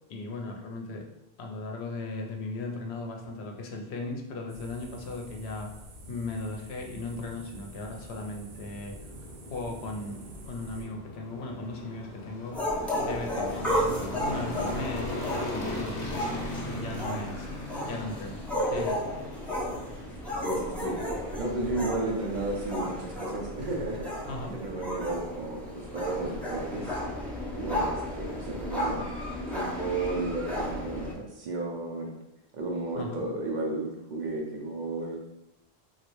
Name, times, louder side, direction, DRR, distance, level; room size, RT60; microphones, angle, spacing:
voice 1, 0.1-1.1 1.4-5.7 6.1-9.1 9.5-12.6 13.0-17.5 17.8-18.4 18.7-19.1 24.3-24.5 33.0-33.2, left 2 dB, 80° left, 2 dB, 0.8 m, -37 dB
sound 1, 4.5-10.9, right 1 dB, 85° right, 0.9 m, -48 dB
sound 2, 6.0-25.4, left 1 dB, 50° left, 0.7 m, -41 dB
sound 3, 12.5-31.1, equal, ahead, 0.4 m, -33 dB
voice 2, 20.3-21.0 21.4-24.1 24.5-27.0 27.5-32.1 32.5-35.2, right 2 dB, 55° right, -1 dB, 0.6 m, -33 dB
3.0 x 2.4 x 3.0 m, 0.89 s
omnidirectional pair, 1.1 m